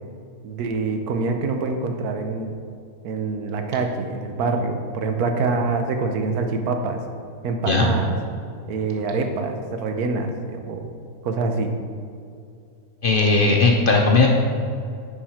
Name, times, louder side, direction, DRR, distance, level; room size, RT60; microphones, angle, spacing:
voice 1, 0.4-2.5 3.0-7.0 7.4-8.2 8.7-10.9 11.2-11.8, right 3 dB, 85° right, 5 dB, 1.3 m, -25 dB
voice 2, 13.0-14.3, left 3 dB, 50° left, 0 dB, 0.7 m, -17 dB
10.0 x 4.6 x 4.3 m, 2.4 s
omnidirectional pair, 1.5 m